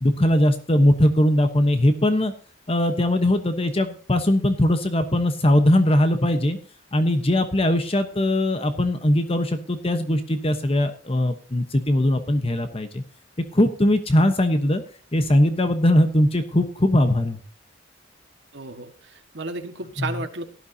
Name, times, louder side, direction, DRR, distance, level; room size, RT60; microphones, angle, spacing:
voice 1, 0.0-2.3 2.7-6.6 6.9-13.0 13.5-14.8 15.1-17.4 20.0-20.2, left 1 dB, 30° left, 8 dB, 1.0 m, -20 dB
voice 2, 18.5-20.5, right 2 dB, 65° right, 5 dB, 1.7 m, -33 dB
17.5 x 11.5 x 2.8 m, 0.39 s
head